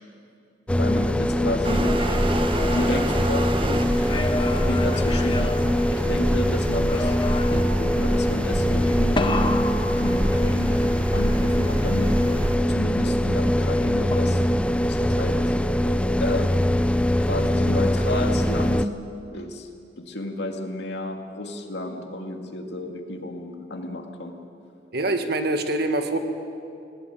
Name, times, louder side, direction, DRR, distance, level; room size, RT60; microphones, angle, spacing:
voice 1, 0.7-2.0 2.6-5.5 5.9-7.2 7.5-9.3 9.9-15.6 16.2-16.8 17.2-18.9 19.3-19.7 20.0-24.4, left 1 dB, 65° left, 4 dB, 2.2 m, -32 dB
sound 1, 0.7-18.9, left 1 dB, 5° left, 0.4 m, -23 dB
sound 2, 1.6-12.6, right 1 dB, 30° right, 0.9 m, -29 dB
sound 3, 1.7-3.6 4.0-6.4 6.9-7.8 9.2-10.8 14.1-14.8, left 1 dB, 30° left, 1.3 m, -31 dB
voice 2, 24.9-26.2, right 2 dB, 60° right, 7 dB, 1.7 m, -25 dB
18.5 x 18.5 x 9.4 m, 2.6 s
head